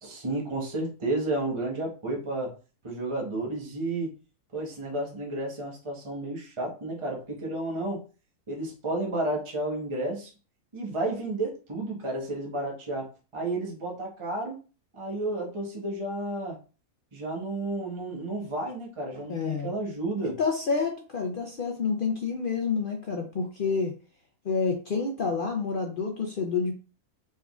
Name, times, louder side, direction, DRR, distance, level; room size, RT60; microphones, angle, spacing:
voice 1, 0.0-2.6 2.8-4.1 4.5-8.1 8.5-10.3 10.7-14.6 14.9-16.6 17.1-20.4, right 2 dB, 25° right, -2 dB, 1.0 m, -32 dB
voice 2, 19.3-19.7 20.2-23.9 24.4-26.7, left 5 dB, 60° left, 2 dB, 0.5 m, -28 dB
4.2 x 3.5 x 2.4 m, 0.34 s
omnidirectional pair, 1.5 m